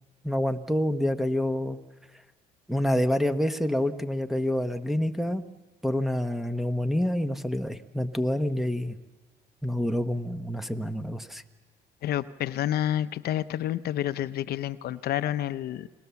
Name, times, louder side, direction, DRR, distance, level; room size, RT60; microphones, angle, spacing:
voice 1, 0.2-1.8 2.7-5.4 5.8-9.0 9.6-11.4, left 1 dB, ahead, 9 dB, 1.1 m, -27 dB
voice 2, 12.0-15.9, left 12 dB, 65° left, 12 dB, 0.8 m, -29 dB
30.0 x 20.5 x 7.1 m, 1.3 s
cardioid pair, 110°, 17 cm